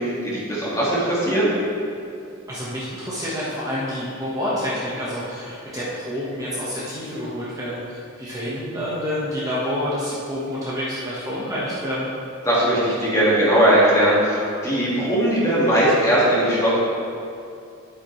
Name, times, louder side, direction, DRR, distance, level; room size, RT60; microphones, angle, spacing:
voice 1, 0.0-1.5 12.5-16.7, right 1 dB, 15° left, -7 dB, 2.1 m, -19 dB
voice 2, 2.5-12.1, equal, 15° right, -9 dB, 1.4 m, -28 dB
11.0 x 8.6 x 3.3 m, 2.5 s
head